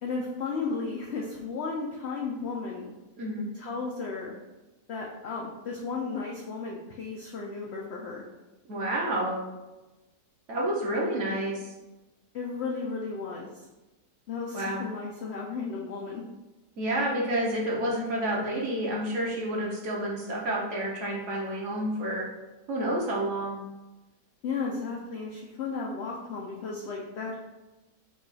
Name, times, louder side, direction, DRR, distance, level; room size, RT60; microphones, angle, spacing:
voice 1, 0.0-2.9 3.5-4.4 4.9-8.2 12.3-13.5 14.3-16.2 24.4-27.4, left 4 dB, 85° left, -1 dB, 0.5 m, -34 dB
voice 2, 3.2-3.5 8.7-9.4 10.5-11.7 14.5-14.8 16.8-22.3 22.7-23.6, right 1 dB, 55° right, -3 dB, 0.9 m, -29 dB
4.7 x 2.3 x 4.0 m, 1.1 s
omnidirectional pair, 1.8 m